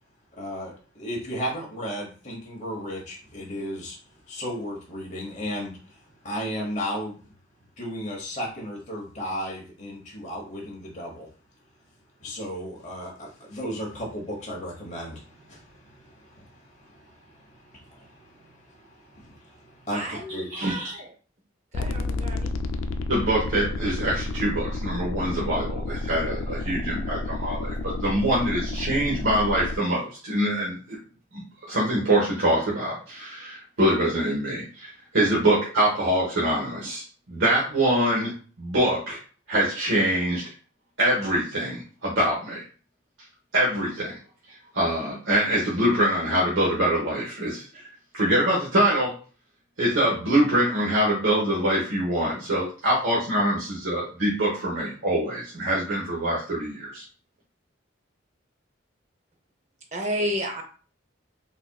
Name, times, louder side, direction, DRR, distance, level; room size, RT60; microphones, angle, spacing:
voice 1, 0.3-7.3 7.8-11.3 12.2-20.8, equal, 35° left, -1 dB, 1.0 m, -35 dB
voice 2, 19.9-21.1 21.7-22.5 59.9-60.6, equal, 35° right, 3 dB, 0.6 m, -31 dB
voice 3, 20.5-21.0 23.1-31.0 31.3-39.2 39.5-40.4 41.0-42.6 43.5-44.2 44.7-47.9 48.1-49.2 49.8-57.0, right 1 dB, 80° right, -6 dB, 1.0 m, -24 dB
sound 1, 21.7-29.8, left 2 dB, 75° left, 0.3 m, -30 dB
4.0 x 2.7 x 2.2 m, 0.38 s
head